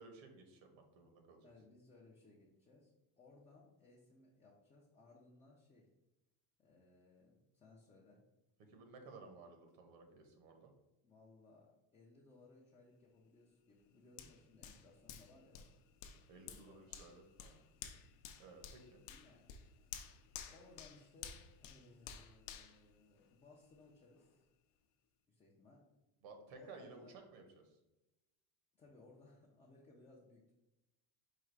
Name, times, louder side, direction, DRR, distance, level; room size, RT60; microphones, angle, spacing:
voice 1, 0.0-1.5 8.6-10.7 16.3-17.6 18.4-19.0 26.2-27.8, right 3 dB, 75° right, 5 dB, 1.1 m, -56 dB
voice 2, 1.4-5.9 6.6-8.2 11.0-15.7 16.5-17.0 19.0-20.2 20.5-24.5 25.3-25.8 26.5-27.1 28.7-30.5, left 3 dB, 15° left, -4 dB, 0.3 m, -64 dB
Hands, 14.2-23.7 24.2-24.3, left 8 dB, 75° left, 0.6 m, -53 dB
4.8 x 2.4 x 4.5 m, 0.97 s
cardioid pair, 150°, 46 cm